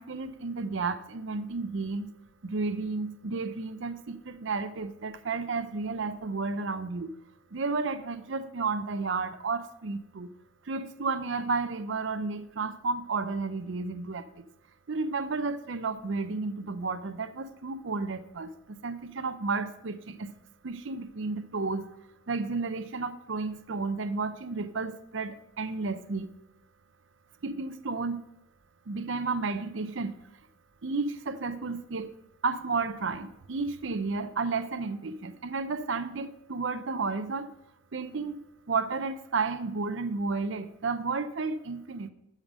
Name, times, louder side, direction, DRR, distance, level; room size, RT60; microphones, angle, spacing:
voice 1, 0.0-2.1 2.4-7.1 7.5-10.3 10.6-14.5 14.9-20.3 20.6-21.9 22.3-26.3 27.4-28.2 28.9-30.2 30.8-32.1 32.4-37.5 37.9-38.4 38.7-42.1, right 4 dB, 65° right, 12 dB, 0.6 m, -32 dB
12.5 x 5.1 x 5.2 m, 0.87 s
head